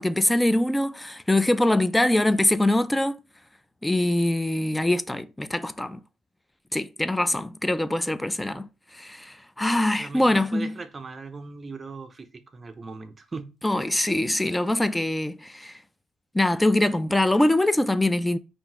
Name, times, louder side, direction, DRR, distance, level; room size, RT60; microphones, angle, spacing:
voice 1, 0.0-3.2 3.8-6.0 6.7-8.7 8.9-10.7 13.6-15.8 16.3-18.4, left 1 dB, 10° left, 0.3 m, -23 dB
voice 2, 9.9-13.6, right 4 dB, 30° right, 0.6 m, -39 dB
3.7 x 2.6 x 4.4 m
cardioid pair, 105°, 0 cm